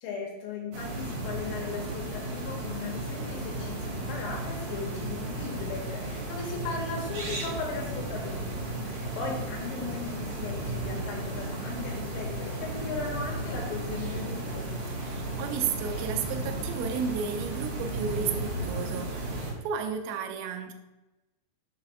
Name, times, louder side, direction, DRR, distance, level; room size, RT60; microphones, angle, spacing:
voice 1, 0.0-8.5 8.8-14.7, left 4 dB, 80° left, -1 dB, 3.7 m, -37 dB
sound 1, 0.7-19.5, right 1 dB, 60° right, 3.5 m, -34 dB
voice 2, 15.0-20.7, right 7 dB, 80° right, 6 dB, 2.7 m, -33 dB
7.6 x 3.3 x 5.8 m, 1.0 s
omnidirectional pair, 5.1 m